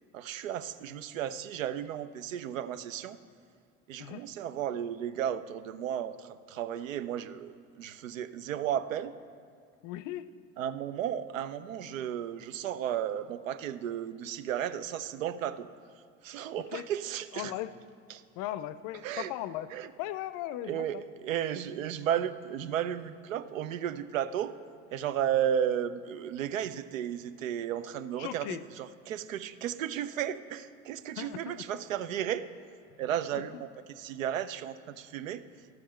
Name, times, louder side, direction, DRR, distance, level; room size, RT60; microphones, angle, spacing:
voice 1, 0.1-3.2 3.9-9.1 10.6-15.7 16.2-17.5 18.1-18.2 19.0-19.3 19.7-19.9 20.6-24.5 24.9-32.5 33.0-35.4, right 10 dB, 85° right, 13 dB, 0.5 m, -34 dB
voice 2, 9.8-10.3 16.7-16.9 17.3-17.7 18.4-19.7 20.0-21.0 28.2-28.6 31.2-31.7 33.3-33.6, left 13 dB, 55° left, 15 dB, 0.5 m, -38 dB
12.0 x 7.2 x 4.4 m, 2.3 s
hypercardioid pair, 65°, 38 cm